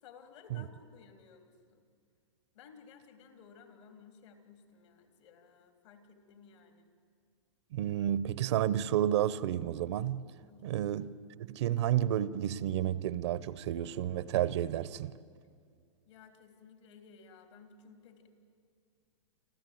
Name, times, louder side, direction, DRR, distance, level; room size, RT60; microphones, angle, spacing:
voice 1, 0.0-1.9 2.5-6.9 10.5-10.8 16.1-18.3, left 6 dB, 65° left, 3.4 m, -57 dB
voice 2, 7.7-10.2 10.6-11.1 11.4-15.1, right 11 dB, 60° right, 0.8 m, -31 dB
28.0 x 13.0 x 9.2 m
hypercardioid pair, 130°, 16 cm